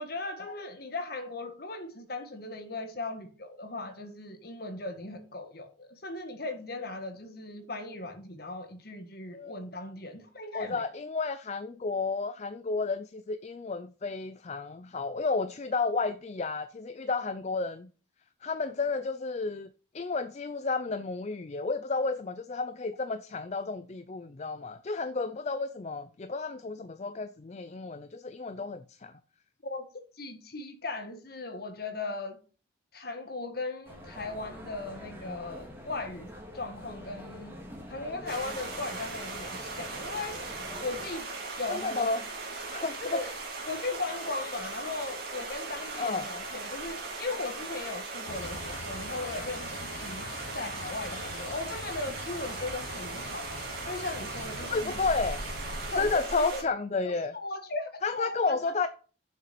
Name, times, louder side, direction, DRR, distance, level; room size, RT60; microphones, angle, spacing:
voice 1, 0.0-10.8 29.6-29.8 30.1-32.4 32.9-37.6 37.9-42.3 43.0-43.3 43.7-50.3 50.5-53.5 53.8-55.0 55.9-56.6 57.0-58.9, left 3 dB, 50° left, 1.5 m, -38 dB
voice 2, 10.5-17.9 18.4-19.7 19.9-29.1 41.7-42.2 42.7-43.2 46.0-46.3 54.7-55.4 56.0-57.3 58.0-58.9, left 4 dB, 35° left, 0.4 m, -32 dB
sound 1, 33.8-41.1, left 1 dB, 10° right, 2.1 m, -46 dB
sound 2, 38.3-56.6, right 3 dB, 50° right, 2.5 m, -38 dB
sound 3, 48.3-56.2, left 3 dB, 85° left, 1.1 m, -44 dB
7.1 x 6.5 x 5.9 m
head